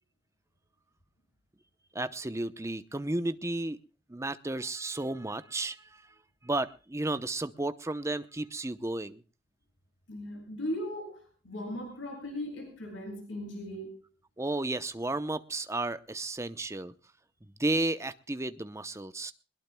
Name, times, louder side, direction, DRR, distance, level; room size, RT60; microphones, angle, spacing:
voice 1, 1.9-3.8 4.1-6.0 6.4-9.2 14.4-16.9 17.6-19.3, right 2 dB, 15° right, 11 dB, 0.8 m, -33 dB
voice 2, 10.1-14.0, left 1 dB, 80° left, 2 dB, 7.3 m, -38 dB
22.0 x 21.0 x 2.3 m, 0.34 s
head